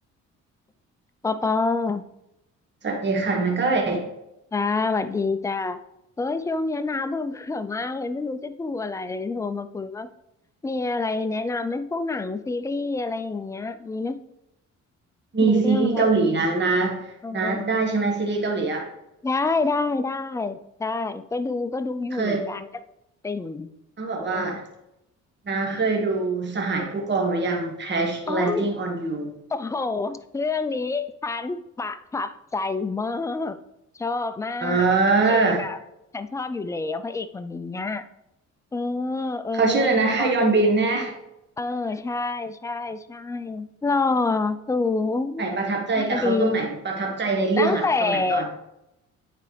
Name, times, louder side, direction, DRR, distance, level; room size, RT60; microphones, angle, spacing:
voice 1, 1.2-2.0 4.5-5.8 6.2-10.1 10.6-14.2 15.4-16.1 17.2-17.7 19.2-22.7 23.2-23.7 24.2-24.6 28.3-28.7 29.5-33.6 33.9-34.9 35.3-35.8 36.1-38.1 38.7-40.3 41.6-45.6 46.0-46.6 47.6-48.6, left 3 dB, 10° left, 11 dB, 0.4 m, -27 dB
voice 2, 2.8-4.0 15.3-18.8 22.1-22.5 24.0-24.6 25.4-29.3 34.6-35.7 39.5-41.1 45.4-48.5, right 3 dB, 35° right, 1 dB, 1.4 m, -23 dB
9.2 x 4.2 x 3.2 m, 0.86 s
cardioid pair, 90°, 30 cm